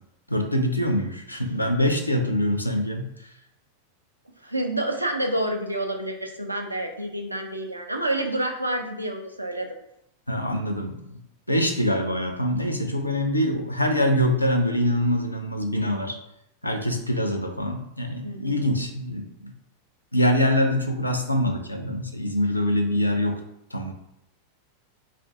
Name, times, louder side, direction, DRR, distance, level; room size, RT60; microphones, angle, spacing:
voice 1, 0.3-3.3 10.3-11.2 11.5-16.2 16.6-19.5 20.1-23.4 23.7-23.9, left 1 dB, 85° left, 4 dB, 0.4 m, -24 dB
voice 2, 4.4-9.8 18.2-18.7, right 1 dB, 85° right, 3 dB, 0.4 m, -28 dB
2.5 x 2.5 x 3.4 m, 0.80 s
figure-of-eight pair, 90°, 0 cm